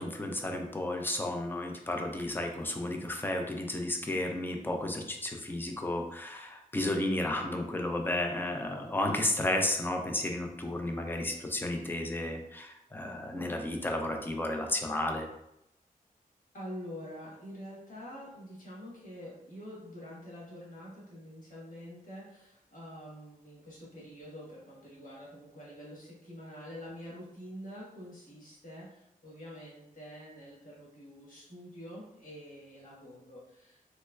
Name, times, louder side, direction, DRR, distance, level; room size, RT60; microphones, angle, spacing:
voice 1, 0.0-15.3, left 1 dB, 15° left, 3 dB, 0.4 m, -33 dB
voice 2, 16.5-33.8, equal, 65° left, -6 dB, 1.4 m, -46 dB
3.2 x 3.1 x 2.3 m, 0.82 s
wide cardioid pair, 160°, 15 cm